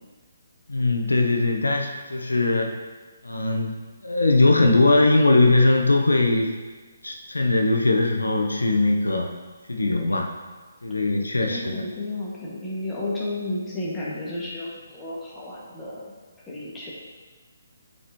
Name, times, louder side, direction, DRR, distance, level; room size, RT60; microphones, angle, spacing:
voice 1, 0.7-2.7 3.2-3.7 4.0-6.6 7.0-9.3 9.7-10.3 10.8-11.8, left 2 dB, 90° left, 2 dB, 0.7 m, -20 dB
voice 2, 11.5-16.1 16.5-16.9, left 1 dB, 10° left, -7 dB, 1.8 m, -32 dB
8.3 x 5.4 x 3.0 m, 1.4 s
figure-of-eight pair, 145°, 0 cm